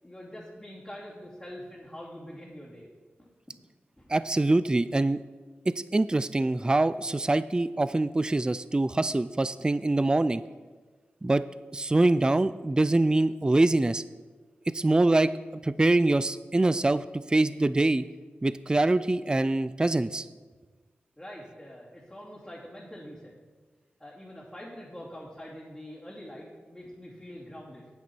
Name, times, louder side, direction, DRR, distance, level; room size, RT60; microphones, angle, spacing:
voice 1, 0.0-2.9 4.0-4.1 21.2-23.3 24.0-27.9, equal, 10° left, -8 dB, 2.7 m, -44 dB
voice 2, 4.1-5.2 5.7-10.4 11.2-11.4 11.7-14.0 14.7-15.3 15.6-18.1 18.4-20.3, right 2 dB, 20° right, 15 dB, 0.3 m, -24 dB
9.2 x 8.6 x 4.5 m, 1.3 s
cardioid pair, 50°, 4 cm